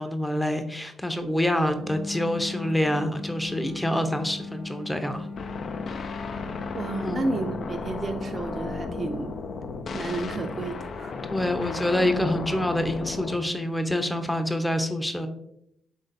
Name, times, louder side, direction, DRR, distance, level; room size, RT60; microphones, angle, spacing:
voice 1, 0.0-5.3 7.0-7.3 11.3-15.3, left 1 dB, 10° left, 7 dB, 0.7 m, -26 dB
sound 1, 1.8-12.6, left 3 dB, 70° left, 1.1 m, -40 dB
sound 2, 5.4-13.4, left 4 dB, 55° left, 0.4 m, -34 dB
voice 2, 6.7-9.4 9.9-11.1, right 3 dB, 45° right, 5 dB, 0.5 m, -31 dB
5.3 x 3.8 x 2.5 m, 0.77 s
hypercardioid pair, 50°, 0 cm